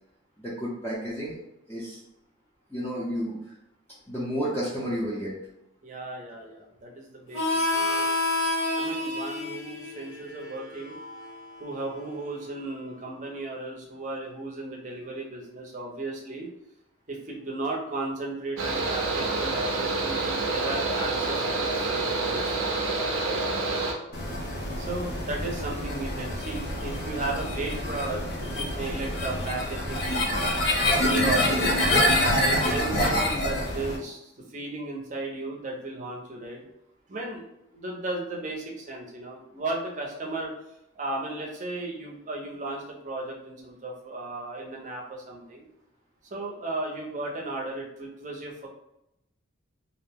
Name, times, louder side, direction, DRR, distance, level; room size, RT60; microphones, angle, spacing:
voice 1, 0.4-1.4 1.7-2.0 2.7-3.5 4.1-5.3, equal, 10° left, -10 dB, 0.5 m, -31 dB
voice 2, 5.8-8.1 8.8-11.0 11.6-16.5 17.1-23.0 23.2-23.4 24.8-30.6 31.0-31.5 32.4-36.6 37.1-37.4 37.7-40.5 40.9-45.6 46.3-48.7, right 2 dB, 40° right, -1 dB, 0.5 m, -35 dB
Harmonica, 7.3-12.6, left 2 dB, 85° left, 1.2 m, -30 dB
Mechanical fan, 18.6-23.9, right 3 dB, 85° right, 0.5 m, -27 dB
sound 1, 24.1-34.0, left 1 dB, 50° left, 0.6 m, -26 dB
2.5 x 2.0 x 3.4 m, 0.83 s
head